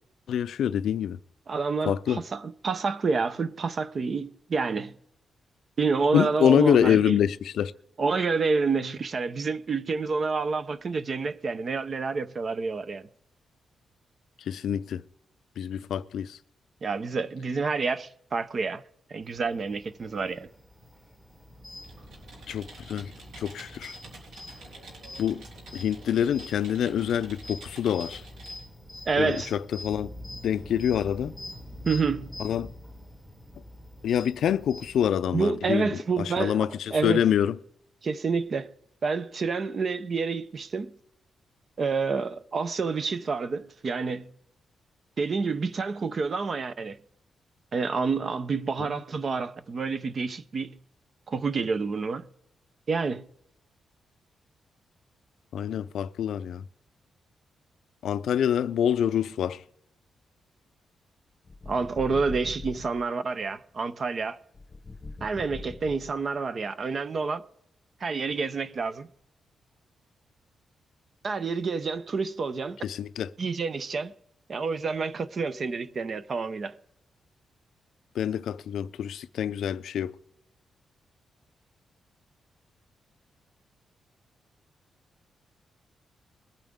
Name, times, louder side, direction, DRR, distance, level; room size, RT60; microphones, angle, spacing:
voice 1, 0.3-1.2 1.9-2.2 6.1-7.7 14.5-15.0 15.6-16.4 22.5-23.1 23.4-23.9 25.2-25.4 25.7-28.2 29.2-30.1 30.4-31.3 32.4-32.7 34.0-35.9 36.2-36.7 37.0-37.6 55.5-56.6 58.0-59.6 72.8-73.3 78.2-80.1, left 9 dB, 75° left, 0.4 m, -26 dB
voice 2, 1.5-4.9 5.8-7.2 8.0-13.1 16.8-18.8 19.1-20.5 29.1-29.5 31.8-32.3 35.3-37.2 38.0-38.7 39.0-40.9 41.8-44.3 45.2-47.0 47.7-50.8 51.3-52.3 52.9-53.3 61.7-64.4 65.2-67.4 68.0-69.1 71.2-72.8 73.4-74.1 74.5-76.7, right 4 dB, 35° right, 0.6 m, -28 dB
sound 1, 19.2-35.1, left 1 dB, 10° right, 1.4 m, -45 dB
Computer keyboard, 21.8-28.6, right 2 dB, 80° right, 4.3 m, -48 dB
sound 2, 61.4-63.0 64.5-66.4, left 3 dB, 20° left, 0.9 m, -41 dB
22.0 x 8.9 x 3.6 m
wide cardioid pair, 180°, 0 cm